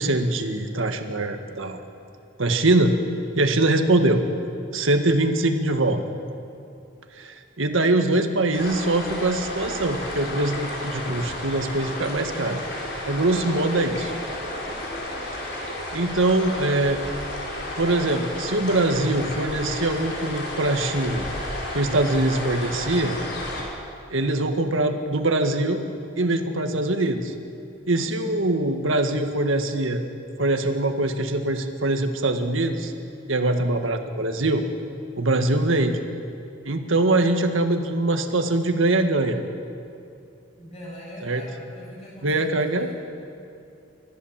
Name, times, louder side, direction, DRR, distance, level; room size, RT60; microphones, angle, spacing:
voice 1, 0.0-1.8 2.4-2.9 3.4-4.2 4.7-6.0 7.2-12.6 13.0-14.1 15.5-15.7 15.9-17.0 17.8-21.3 21.7-23.2 24.1-25.8 26.2-27.3 27.9-30.0 30.4-32.9 33.3-34.6 35.2-36.0 36.7-39.4 41.2-41.4 42.2-42.9, right 2 dB, 85° right, 6 dB, 1.8 m, -23 dB
sound 1, 8.5-23.6, left 1 dB, 55° left, 4.9 m, -32 dB
voice 2, 28.0-28.5 40.6-42.9, left 1 dB, 30° left, -5 dB, 7.1 m, -42 dB
29.5 x 14.5 x 7.6 m, 2.6 s
head